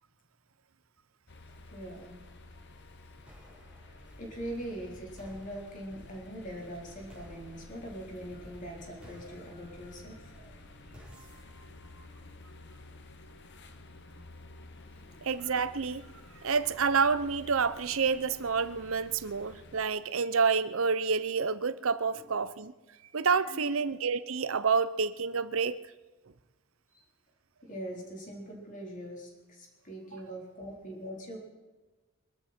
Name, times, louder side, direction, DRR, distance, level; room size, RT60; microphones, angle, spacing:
sound 1, 1.3-19.9, left 2 dB, 55° left, 1.2 m, -52 dB
voice 1, 1.7-2.2 3.8-10.6 15.0-15.3 22.1-22.3 23.5-23.8 26.9-27.0 27.6-31.4, equal, 40° left, 4.1 m, -42 dB
sound 2, 3.3-12.7, equal, 5° right, 3.8 m, -55 dB
voice 2, 15.2-16.1 16.4-22.7 23.1-25.8, right 5 dB, 75° right, 0.7 m, -28 dB
23.5 x 13.0 x 4.5 m
head